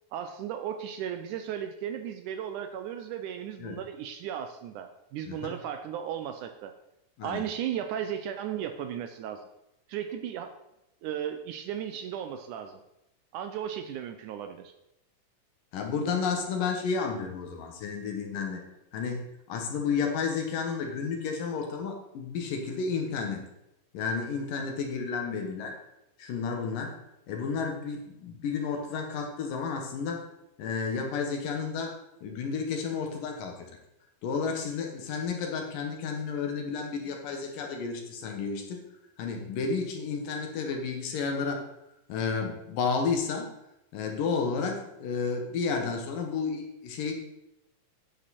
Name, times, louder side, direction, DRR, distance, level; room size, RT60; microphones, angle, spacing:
voice 1, 0.1-6.7 7.2-9.5 9.9-10.5 11.0-12.8 13.3-14.7, right 9 dB, 75° right, 8 dB, 1.9 m, -35 dB
voice 2, 5.3-5.6 7.2-7.4 15.7-18.6 18.9-23.4 23.9-25.8 26.2-26.9 27.3-30.2 30.6-33.8 34.2-38.8 39.2-41.6 42.1-43.5 43.9-47.1, left 5 dB, 75° left, 3 dB, 3.0 m, -31 dB
9.8 x 8.7 x 4.2 m, 0.86 s
omnidirectional pair, 4.0 m